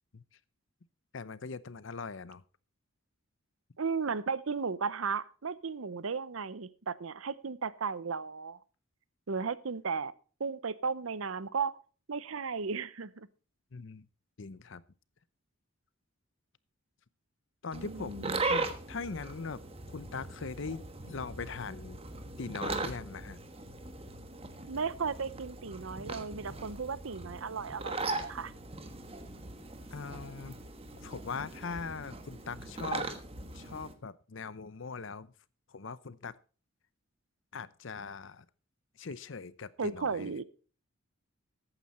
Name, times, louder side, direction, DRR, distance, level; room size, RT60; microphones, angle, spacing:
voice 1, 1.1-2.4 13.7-14.1 14.4-14.8 17.6-19.6 19.9-22.0 22.4-23.4 29.9-30.6 31.0-33.1 33.5-35.3 35.7-36.3 37.5-38.5 39.0-40.3, left 4 dB, 60° left, 0.7 m, -41 dB
voice 2, 3.8-8.6 9.3-10.1 10.4-11.8 12.1-13.3 17.7-18.4 24.7-28.5 39.8-40.4, right 5 dB, 75° right, 0.7 m, -35 dB
sound 1, 17.7-33.9, right 3 dB, 30° right, 1.3 m, -39 dB
14.0 x 9.0 x 4.2 m
head